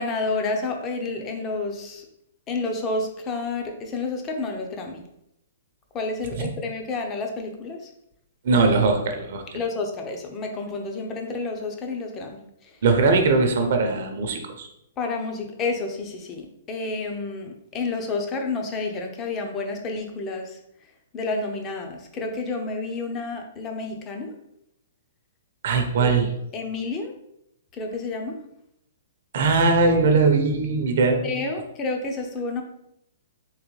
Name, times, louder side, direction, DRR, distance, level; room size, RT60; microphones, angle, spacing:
voice 1, 0.0-2.0 2.5-5.0 5.9-7.9 9.5-12.4 15.0-20.6 21.1-24.4 26.0-27.1 27.7-28.4 31.2-32.6, left 3 dB, 25° left, 3 dB, 0.7 m, -30 dB
voice 2, 8.4-9.6 12.8-14.7 25.6-26.3 29.3-31.3, right 4 dB, 60° right, 5 dB, 0.6 m, -20 dB
3.8 x 3.0 x 3.1 m, 0.79 s
hypercardioid pair, 135°, 0 cm